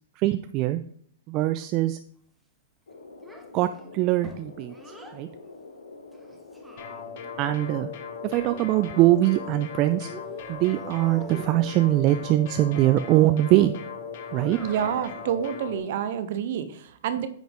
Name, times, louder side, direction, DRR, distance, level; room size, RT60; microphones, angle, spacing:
voice 1, 0.2-0.8 1.3-2.0 3.5-4.7 5.1-5.3 7.4-7.9 8.2-10.1 10.5-13.7 14.3-14.6, right 15 dB, 40° right, 11 dB, 0.3 m, -22 dB
sound 1, 2.9-16.0, left 3 dB, 85° left, 1.2 m, -46 dB
Child speech kid speaking, 3.2-5.2 6.1-7.4 8.5-9.7 10.0-11.8 14.3-15.2, right 3 dB, 5° right, 0.9 m, -46 dB
sound 2, 6.8-15.8, left 6 dB, 60° left, 1.1 m, -39 dB
voice 2, 14.6-17.3, right 9 dB, 60° right, 11 dB, 0.8 m, -28 dB
9.2 x 3.9 x 3.5 m, 0.62 s
hypercardioid pair, 120°, 0 cm